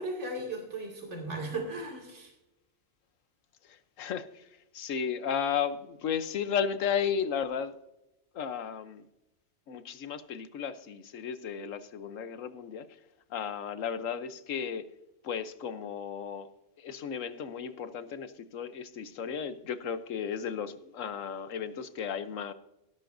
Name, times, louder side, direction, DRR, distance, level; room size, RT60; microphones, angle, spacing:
voice 1, 0.0-2.3, right 2 dB, 65° right, 0 dB, 2.7 m, -36 dB
voice 2, 3.7-4.4 4.7-7.7 8.3-9.0 9.7-12.9 13.3-14.9 15.2-16.5 16.8-22.5, left 7 dB, 90° left, 11 dB, 1.2 m, -34 dB
17.0 x 11.0 x 2.6 m, 0.92 s
omnidirectional pair, 1.3 m